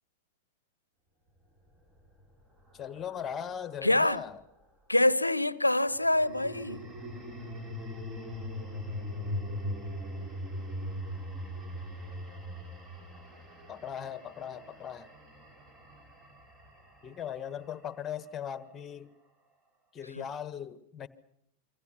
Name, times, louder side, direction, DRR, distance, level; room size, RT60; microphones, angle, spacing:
sound 1, 1.7-4.2 5.9-18.1, left 1 dB, 25° right, 5.8 m, -41 dB
voice 1, 2.7-4.4 13.7-15.1 17.0-19.1 19.9-21.1, left 8 dB, 25° left, 1.6 m, -39 dB
voice 2, 3.8-4.2 4.9-6.9 20.2-20.3, left 1 dB, 85° left, 0.8 m, -25 dB
26.5 x 25.0 x 5.8 m
figure-of-eight pair, 90°, 0 cm